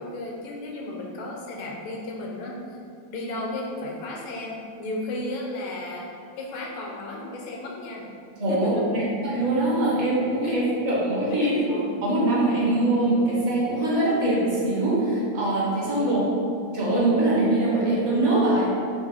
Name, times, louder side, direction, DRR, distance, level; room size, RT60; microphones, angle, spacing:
voice 1, 0.0-2.8 3.1-6.1 6.4-8.1 8.5-8.9 10.4-10.5 11.4-11.8 16.0-16.2, left 2 dB, 85° left, -2 dB, 1.5 m, -33 dB
voice 2, 8.4-11.5 12.0-16.2 16.7-18.7, right 1 dB, 45° right, -7 dB, 1.0 m, -23 dB
6.0 x 2.0 x 3.5 m, 2.4 s
omnidirectional pair, 2.2 m